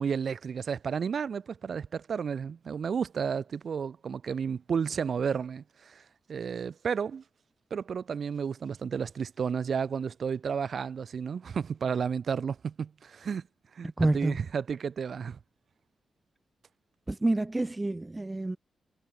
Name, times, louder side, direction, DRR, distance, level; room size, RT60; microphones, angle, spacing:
voice 1, 0.0-6.0 6.3-7.2 7.7-13.5 13.7-15.4, right 6 dB, 50° right, 0.7 m, -32 dB
voice 2, 14.0-14.4 17.1-18.6, right 2 dB, 15° right, 0.5 m, -28 dB
wide cardioid pair, 145°, 0 cm